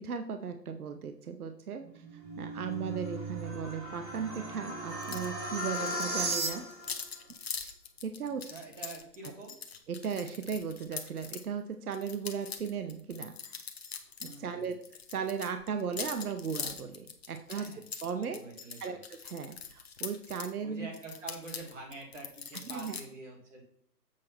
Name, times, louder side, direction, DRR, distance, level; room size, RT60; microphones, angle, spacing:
voice 1, 0.0-6.7 7.6-7.7 8.0-8.4 9.9-13.6 14.2-14.7 15.1-17.7 18.0-18.4 18.8-20.9 22.7-23.0, right 6 dB, 60° right, 8 dB, 0.8 m, -37 dB
sound 1, 1.8-7.0, right 1 dB, 85° right, 3.8 m, -36 dB
sound 2, 5.0-5.3 5.5-11.4 11.9-14.4 14.6-20.5 20.9-23.0, left 6 dB, 40° left, 0.9 m, -42 dB
voice 2, 8.2-9.6 14.2-14.7 17.5-17.8 18.2-19.0 20.6-23.6, right 3 dB, 45° right, 0 dB, 3.0 m, -46 dB
7.5 x 4.3 x 5.9 m, 0.65 s
hypercardioid pair, 165°, 50 cm